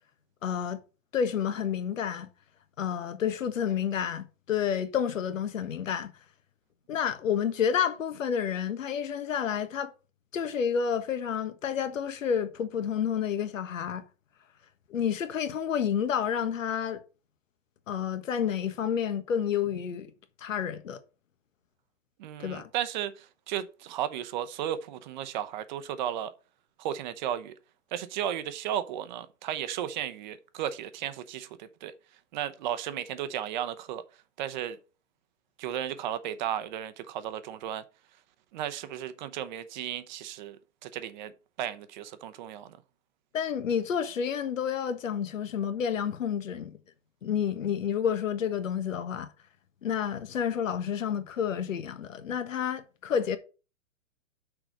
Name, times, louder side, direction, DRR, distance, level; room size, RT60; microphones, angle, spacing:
voice 1, 0.4-0.8 1.1-2.3 2.8-6.1 6.9-9.9 10.3-14.0 14.9-17.0 17.9-20.1 20.4-21.0 22.4-22.7 43.3-46.8 47.2-49.3 49.8-53.4, left 8 dB, 80° left, 1.5 m, -30 dB
voice 2, 22.2-26.3 26.8-27.5 27.9-31.9 32.3-34.0 34.4-34.8 35.6-37.8 38.5-40.6 40.8-41.3 41.6-42.8, right 10 dB, 35° right, 0.8 m, -34 dB
6.3 x 4.9 x 6.4 m
hypercardioid pair, 145°, 38 cm